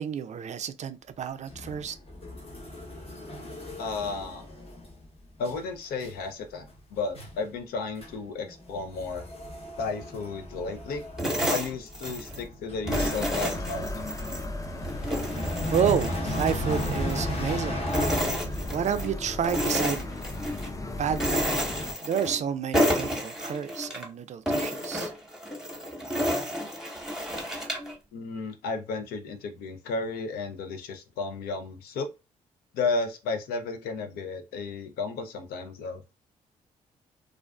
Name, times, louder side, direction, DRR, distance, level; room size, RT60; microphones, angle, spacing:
voice 1, 0.0-2.0 15.7-18.4 18.7-20.0 21.0-21.6 22.0-25.1, right 8 dB, 50° right, 0.4 m, -30 dB
sound 1, 1.5-5.1 5.4-5.7 6.0-6.3 6.7-6.8 7.1-7.5 8.0-8.2 8.4-19.1, left 1 dB, 40° left, 0.9 m, -35 dB
voice 2, 3.8-4.5 5.4-9.3 9.8-11.0 11.5-13.9 28.1-32.1 32.7-36.0, left 4 dB, 75° left, 0.5 m, -33 dB
sound 2, 11.2-12.5 12.9-14.4 14.8-17.5 17.9-19.1 19.4-20.7 21.1-22.5 22.7-24.1 24.5-27.9, equal, 5° right, 0.9 m, -30 dB
sound 3, 12.9-21.9, left 1 dB, 20° left, 0.5 m, -36 dB
2.4 x 2.3 x 2.2 m
supercardioid pair, 50°, 16 cm